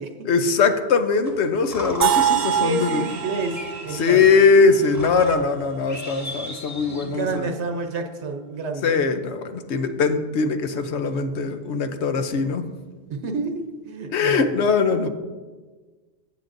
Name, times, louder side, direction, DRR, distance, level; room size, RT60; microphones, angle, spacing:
voice 1, 0.2-3.1 3.9-7.5 8.8-12.7 14.1-15.1, left 5 dB, 80° left, 8 dB, 1.0 m, -21 dB
sound 1, 1.2-7.4, left 1 dB, 15° left, 1.5 m, -38 dB
sound 2, 2.0-5.9, right 10 dB, 55° right, 0.5 m, -25 dB
voice 2, 2.3-4.6 6.8-9.2 10.7-10.8 13.1-14.5, right 3 dB, 85° right, 5 dB, 1.2 m, -30 dB
14.5 x 8.2 x 2.6 m, 1.3 s
omnidirectional pair, 1.1 m